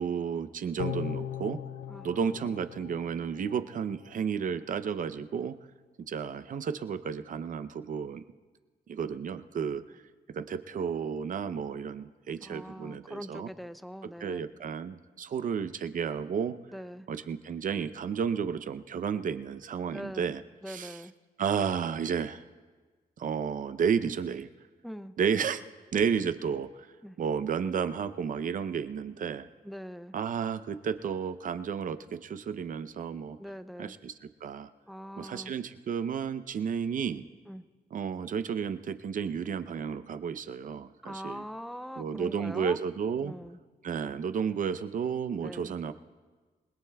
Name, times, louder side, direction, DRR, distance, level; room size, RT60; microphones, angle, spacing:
voice 1, 0.0-1.6 2.0-5.6 6.1-8.2 8.9-9.8 10.3-13.5 14.2-16.6 17.1-20.4 20.7-21.0 21.4-22.4 23.2-24.5 25.2-25.6 25.9-26.7 27.2-29.5 30.1-33.4 33.8-34.1 34.4-34.7 35.2-37.2 37.9-41.4 42.0-43.3 43.8-45.9, right 7 dB, 50° right, 12 dB, 0.6 m, -32 dB
sound 1, 0.8-4.1 4.5-4.6, left 11 dB, 80° left, 0.4 m, -39 dB
voice 2, 1.9-2.5 12.4-14.5 16.7-17.1 19.9-20.3 20.6-21.1 24.8-25.1 27.0-27.2 29.6-30.1 33.4-34.0 34.9-35.5 37.5-37.6 41.0-42.8 43.2-43.6 45.4-45.7, equal, ahead, 12 dB, 0.4 m, -42 dB
28.0 x 21.0 x 2.3 m, 1.3 s
wide cardioid pair, 165°, 17 cm